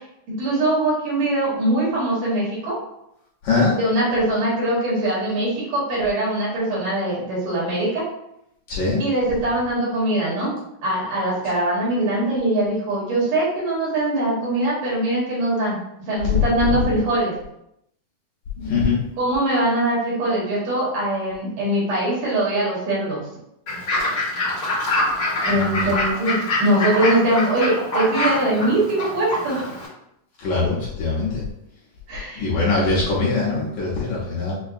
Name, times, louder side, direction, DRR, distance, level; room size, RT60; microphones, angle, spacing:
voice 1, 0.3-2.8 3.8-8.0 9.0-10.5 10.8-17.3 18.6-18.7 19.2-23.3 25.4-29.8 32.1-32.5, right 1 dB, 75° right, -6 dB, 3.0 m, -22 dB
voice 2, 3.4-3.8 8.7-9.0 16.3-16.4 16.7-16.8 18.6-19.1 25.5-25.9 30.4-31.4 32.4-34.5, left 3 dB, 70° left, -6 dB, 1.9 m, -22 dB
Fowl / Bird, 23.7-29.9, left 1 dB, 50° left, 1.3 m, -25 dB
6.2 x 2.2 x 2.5 m, 0.80 s
omnidirectional pair, 3.8 m